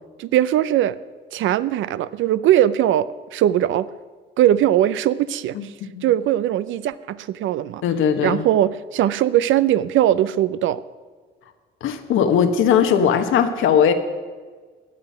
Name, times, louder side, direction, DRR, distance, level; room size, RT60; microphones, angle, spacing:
voice 1, 0.2-1.0 1.3-3.9 4.4-5.6 6.0-7.8 8.2-10.8, right 12 dB, 80° right, 16 dB, 0.5 m, -20 dB
voice 2, 5.5-6.1 7.8-8.5 11.8-13.9, left 8 dB, 85° left, 7 dB, 1.3 m, -19 dB
16.5 x 10.0 x 5.6 m, 1.5 s
cardioid pair, 90°, 20 cm